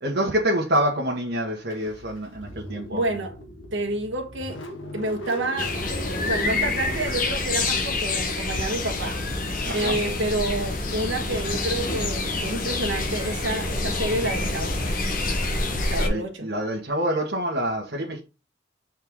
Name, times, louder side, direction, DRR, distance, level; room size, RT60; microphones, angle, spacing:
voice 1, 0.0-3.0 9.6-10.0 16.0-18.2, right 1 dB, 60° right, 1.5 m, -26 dB
Car / Engine starting, 1.7-10.5, left 1 dB, 85° left, 1.5 m, -40 dB
voice 2, 2.9-3.4 3.7-4.6 4.9-5.8 6.2-9.2 9.7-14.8 15.8-16.5, right 2 dB, 85° right, 1.4 m, -29 dB
sound 1, 5.6-16.1, left 2 dB, 45° left, 1.0 m, -27 dB
6.3 x 4.5 x 3.6 m
head